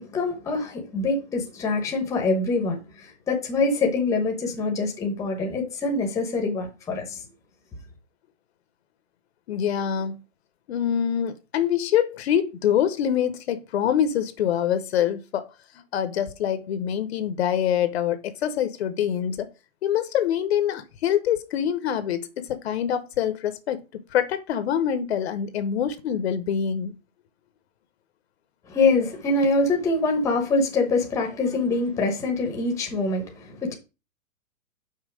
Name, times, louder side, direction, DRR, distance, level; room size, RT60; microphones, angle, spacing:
voice 1, 0.0-7.2 28.7-33.7, left 3 dB, 10° left, 1.0 m, -24 dB
voice 2, 9.5-10.2 10.7-15.5 15.9-19.5 19.8-23.8 24.1-27.0, left 9 dB, 50° left, 0.9 m, -25 dB
5.7 x 4.3 x 6.2 m
hypercardioid pair, 160°, 40 cm